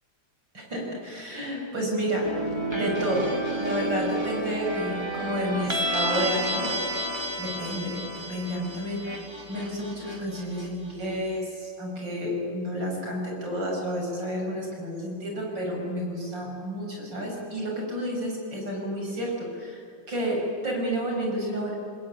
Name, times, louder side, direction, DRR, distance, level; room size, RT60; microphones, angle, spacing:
voice 1, 0.5-2.3 2.7-3.3 3.6-6.8 7.4-21.7, equal, 70° right, 0 dB, 7.4 m, -30 dB
sound 1, 2.2-11.1, right 1 dB, 15° right, 2.8 m, -31 dB
29.0 x 20.5 x 9.8 m, 2.4 s
omnidirectional pair, 2.0 m